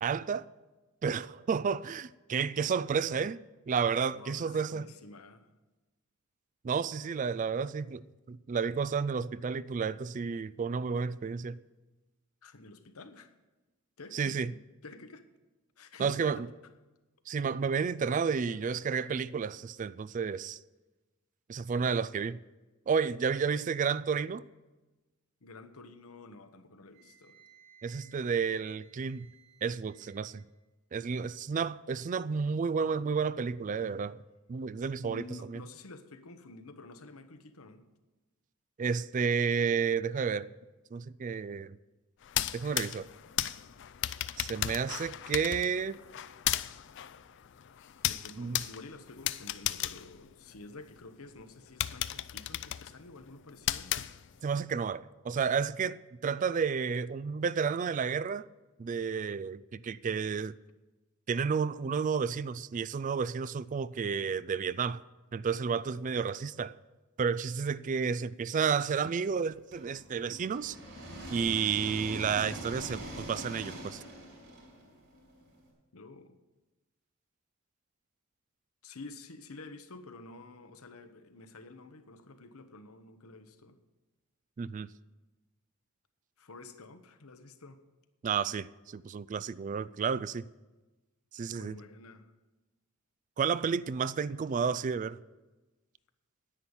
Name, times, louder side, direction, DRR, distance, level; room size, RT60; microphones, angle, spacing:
voice 1, 0.0-0.5 1.0-3.4 3.7-4.8 6.6-11.6 14.1-14.5 16.0-16.4 17.3-20.6 21.5-22.4 22.9-24.4 27.8-29.3 29.6-30.4 30.9-34.2 34.5-35.2 35.5-35.6 38.8-40.5 40.9-41.8 42.5-43.1 44.4-46.0 48.4-48.6 54.4-58.5 58.8-60.6 61.3-65.0 65.3-66.7 67.2-70.8 71.3-74.0 84.6-84.9 88.2-90.5 91.3-91.7 93.4-95.2, right 6 dB, 35° right, 0.3 m, -31 dB
voice 2, 4.1-5.5 12.4-13.3 14.0-15.2 15.8-16.7 25.4-27.4 35.0-37.8 48.1-54.0 75.9-76.4 78.8-83.8 86.4-87.8 91.5-92.3, left 3 dB, 85° left, 1.1 m, -50 dB
Wind instrument woodwind instrument, 26.9-30.4, right 7 dB, 75° right, 3.2 m, -61 dB
sound 1, 42.2-51.0 51.4-51.5 51.8-54.6, left 13 dB, 55° left, 0.4 m, -35 dB
sound 2, 69.7-75.6, right 1 dB, 60° right, 5.6 m, -43 dB
10.0 x 9.7 x 7.1 m
head